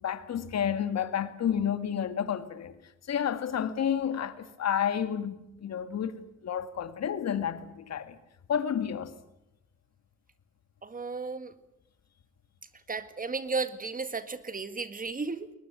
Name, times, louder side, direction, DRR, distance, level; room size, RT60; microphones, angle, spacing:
voice 1, 0.0-2.7 3.1-6.2 6.4-8.2 8.5-9.1, left 8 dB, 60° left, 2.2 m, -30 dB
voice 2, 10.8-11.5 12.9-15.5, right 4 dB, 30° right, 1.9 m, -34 dB
22.0 x 20.0 x 9.3 m
cardioid pair, 90°, 30 cm